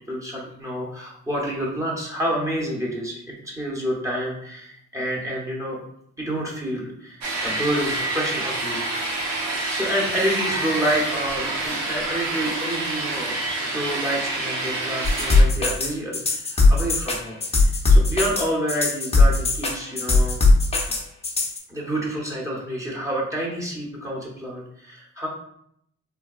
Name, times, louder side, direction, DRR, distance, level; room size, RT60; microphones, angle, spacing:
voice 1, 0.1-5.8 6.2-8.8 9.3-20.4 20.9-21.0 21.7-25.3, equal, 10° right, -4 dB, 0.9 m, -28 dB
sound 1, 7.2-15.4, right 2 dB, 65° right, 0.8 m, -27 dB
sound 2, 15.0-21.6, left 3 dB, 20° left, 0.7 m, -18 dB
3.4 x 2.2 x 2.4 m, 0.71 s
cardioid pair, 90°, 30 cm